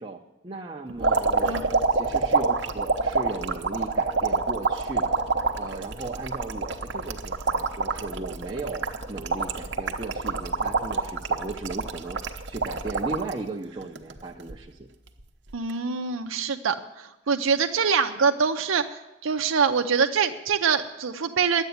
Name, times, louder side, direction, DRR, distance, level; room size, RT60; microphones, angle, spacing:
voice 1, 0.0-5.2 5.5-14.9, right 3 dB, 25° right, -2 dB, 0.7 m, -36 dB
sound 1, 1.0-13.3 13.8-14.5 15.5-15.7, right 4 dB, 60° right, 0.9 m, -26 dB
voice 2, 15.5-21.6, right 6 dB, 90° right, 5 dB, 0.7 m, -24 dB
10.5 x 8.2 x 9.3 m, 1.0 s
head